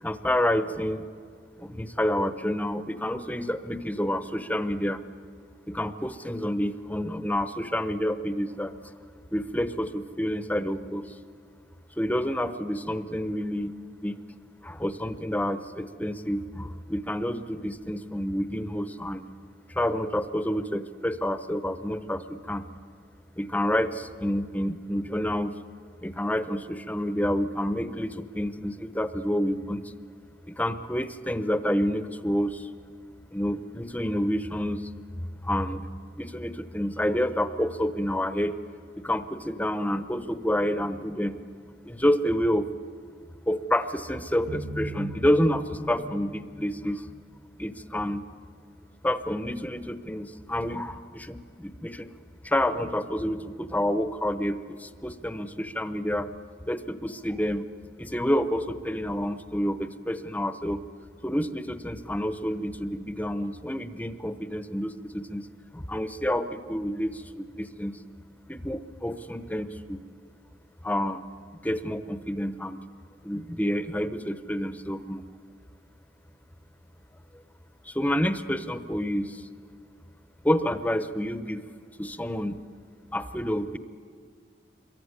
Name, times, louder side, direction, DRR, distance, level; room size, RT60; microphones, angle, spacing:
voice 1, 0.0-1.1 1.6-5.0 5.7-8.7 9.3-11.2 12.0-13.7 14.0-14.2 14.6-19.2 19.7-22.6 23.4-25.5 26.0-29.9 30.5-32.7 33.3-34.9 35.2-35.9 36.2-38.6 39.0-41.4 41.8-42.7 43.5-47.1 47.6-48.2 49.0-52.1 52.4-56.3 56.7-57.6 58.0-60.8 61.2-65.5 65.7-68.0 68.5-70.0 70.8-71.2 71.6-72.8 73.2-75.2 77.8-79.5 80.4-81.6 82.0-82.6 83.1-83.8, equal, 10° left, 11 dB, 0.8 m, -28 dB
sound 1, 44.5-47.7, equal, 60° right, 5.4 m, -39 dB
26.5 x 23.0 x 9.7 m, 2.1 s
head